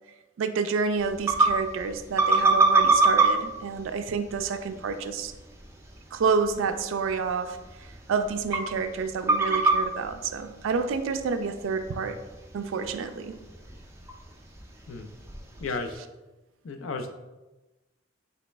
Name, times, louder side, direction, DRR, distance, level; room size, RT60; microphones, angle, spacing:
voice 1, 0.4-5.3 6.1-12.2 12.5-13.3, right 5 dB, 80° right, 8 dB, 0.3 m, -29 dB
sound 1, 1.0-15.9, right 3 dB, 15° right, 0.4 m, -28 dB
voice 2, 15.6-16.0 16.6-17.1, left 3 dB, 80° left, 6 dB, 0.4 m, -33 dB
4.1 x 3.0 x 3.3 m, 1.1 s
head